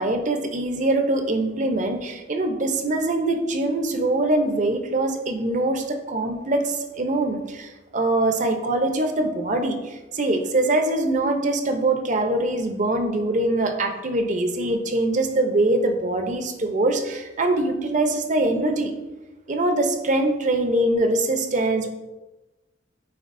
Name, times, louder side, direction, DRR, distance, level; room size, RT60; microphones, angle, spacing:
voice 1, 0.0-18.9 19.5-21.9, right 2 dB, 45° right, 5 dB, 0.7 m, -23 dB
9.4 x 4.0 x 2.6 m, 1.1 s
head